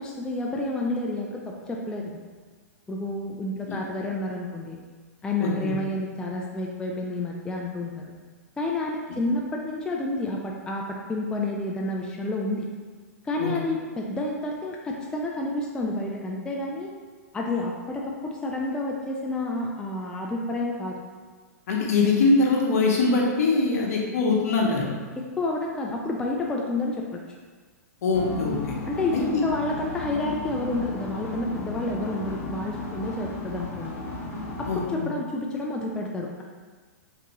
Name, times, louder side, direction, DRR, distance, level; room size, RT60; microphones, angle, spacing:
voice 1, 0.0-2.2 2.9-4.8 5.2-8.1 8.6-12.7 13.2-16.9 17.3-21.0 25.2-27.2 28.9-33.9 34.6-36.4, left 2 dB, 10° left, -1 dB, 0.3 m, -30 dB
voice 2, 5.4-5.7 13.4-13.5 21.7-24.9 28.0-28.6 29.1-29.4 34.7-35.1, left 3 dB, 65° left, -2 dB, 0.9 m, -23 dB
sound 1, 28.1-34.9, left 2 dB, 40° left, 1.0 m, -34 dB
3.4 x 2.9 x 2.9 m, 1.5 s
hypercardioid pair, 115°, 9 cm